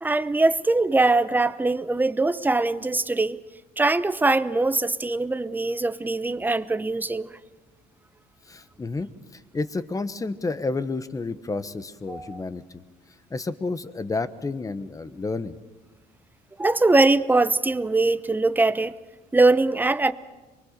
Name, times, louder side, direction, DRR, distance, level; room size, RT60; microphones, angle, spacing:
voice 1, 0.0-3.4 3.8-7.4 12.1-12.4 16.6-18.9 19.3-20.1, right 2 dB, 10° right, 0.8 m, -22 dB
voice 2, 8.5-12.6 13.3-15.6, left 3 dB, 20° left, 1.1 m, -30 dB
24.0 x 24.0 x 6.7 m
cardioid pair, 110°, 17 cm